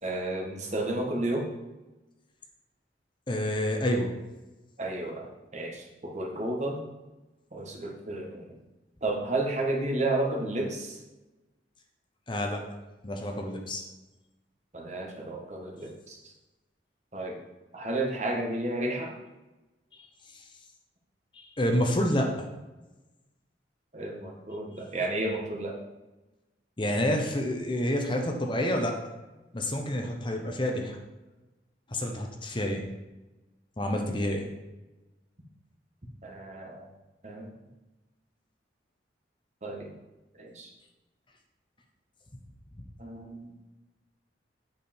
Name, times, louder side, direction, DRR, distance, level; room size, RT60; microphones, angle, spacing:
voice 1, 0.0-1.5 4.8-6.8 7.5-8.6 9.0-11.0 14.7-16.3 17.1-17.4 17.7-19.1 23.9-25.8 36.2-36.9 37.2-37.5 39.6-39.9 40.4-40.7 43.0-43.5, right 2 dB, 40° right, 0 dB, 1.6 m, -32 dB
voice 2, 3.3-4.1 12.3-12.6 13.0-13.8 21.6-22.5 26.8-29.0 29.5-31.0 31.9-32.8 33.8-34.5, left 1 dB, 25° left, 3 dB, 1.0 m, -28 dB
8.4 x 7.5 x 4.4 m, 1.1 s
head